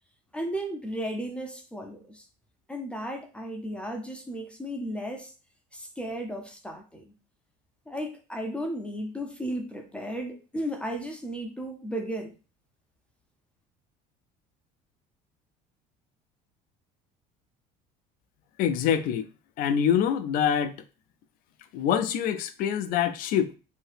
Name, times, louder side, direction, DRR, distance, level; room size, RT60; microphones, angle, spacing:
voice 1, 0.3-2.3 2.7-5.3 5.7-7.1 7.9-12.4, equal, 5° left, 0.5 m, -34 dB
voice 2, 18.6-19.3 19.6-20.7 21.7-23.6, left 9 dB, 60° left, 0.4 m, -25 dB
2.8 x 2.7 x 3.3 m
cardioid pair, 125°, 16 cm